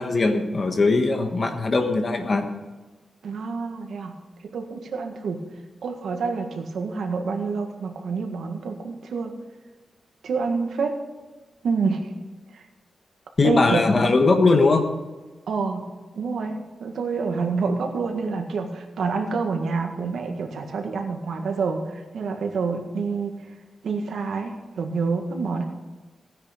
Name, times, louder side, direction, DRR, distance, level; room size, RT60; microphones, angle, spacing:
voice 1, 0.0-2.5 13.4-14.9, left 3 dB, 35° left, 6 dB, 1.3 m, -20 dB
voice 2, 3.2-4.1 4.5-5.4 5.8-9.3 10.2-11.0 11.6-12.0 12.5-12.6 13.4-13.8 15.5-15.9 16.1-23.3 23.8-25.6, right 4 dB, 80° right, 4 dB, 1.7 m, -27 dB
16.0 x 9.7 x 5.3 m, 1.2 s
wide cardioid pair, 180°, 0 cm